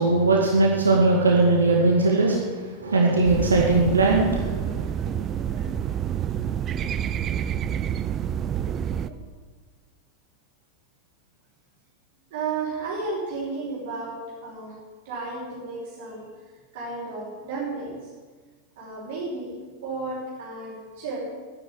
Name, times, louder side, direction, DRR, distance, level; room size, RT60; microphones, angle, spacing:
voice 1, 0.0-2.5 2.8-4.7, right 3 dB, 75° right, -1 dB, 2.1 m, -19 dB
sound 1, 3.2-9.1, right 9 dB, 30° right, 0.6 m, -28 dB
voice 2, 4.6-6.4 8.8-9.2 12.3-14.8 15.0-16.3 16.7-18.1 18.8-19.6 19.8-21.3, right 3 dB, 50° right, -6 dB, 5.4 m, -34 dB
11.0 x 11.0 x 9.4 m, 1.4 s
figure-of-eight pair, 90°, 0 cm